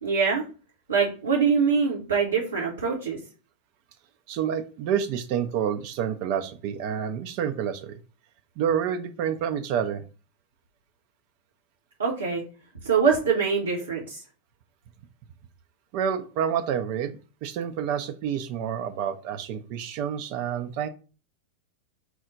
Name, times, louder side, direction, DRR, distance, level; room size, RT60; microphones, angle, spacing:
voice 1, 0.0-0.5 0.9-3.2 12.0-12.4 12.8-14.2, right 5 dB, 75° right, -4 dB, 0.8 m, -24 dB
voice 2, 4.3-8.0 8.6-10.0 15.9-20.9, right 8 dB, 45° right, 7 dB, 0.3 m, -28 dB
4.5 x 2.1 x 3.8 m, 0.36 s
figure-of-eight pair, 90°, 0 cm